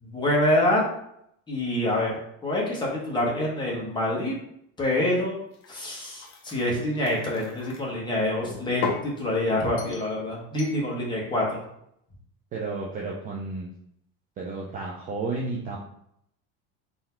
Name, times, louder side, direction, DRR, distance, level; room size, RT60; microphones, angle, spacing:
voice 1, 0.0-0.8 1.5-2.1 2.4-4.3 4.8-5.4 5.7-11.6, left 1 dB, 15° left, -3 dB, 0.9 m, -26 dB
sound 1, 5.5-7.8 8.4-9.1 9.8-10.1 10.6-10.8, left 5 dB, 35° left, 0.6 m, -36 dB
voice 2, 12.5-13.7 14.4-15.8, right 3 dB, 25° right, -3 dB, 0.4 m, -32 dB
3.9 x 2.7 x 4.3 m, 0.73 s
cardioid pair, 165°, 35 cm